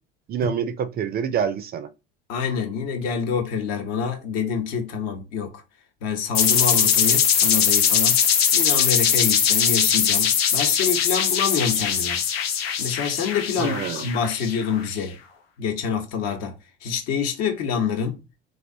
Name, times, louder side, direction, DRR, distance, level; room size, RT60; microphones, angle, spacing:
voice 1, 0.3-1.9 13.6-14.0, right 8 dB, 35° right, 0.4 m, -26 dB
voice 2, 2.3-5.5 6.0-8.2 8.5-12.2 12.8-15.2 15.6-16.5 16.8-18.2, left 6 dB, 60° left, 0.9 m, -26 dB
sound 1, 6.3-14.9, left 8 dB, 85° left, 0.5 m, -21 dB
3.3 x 2.5 x 2.6 m
hypercardioid pair, 65°, 29 cm